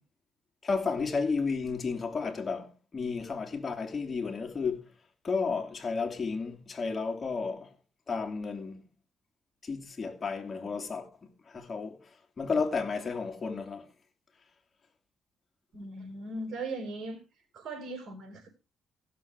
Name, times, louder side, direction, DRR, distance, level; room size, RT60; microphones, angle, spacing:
voice 1, 0.6-4.9 5.2-7.7 8.1-8.9 9.6-11.1 11.5-12.1 12.4-13.9, left 4 dB, 35° left, 2.8 m, -32 dB
voice 2, 15.7-17.2 17.5-18.5, right 2 dB, 65° right, 4.4 m, -38 dB
16.0 x 6.9 x 4.6 m
cardioid pair, 90°, 0 cm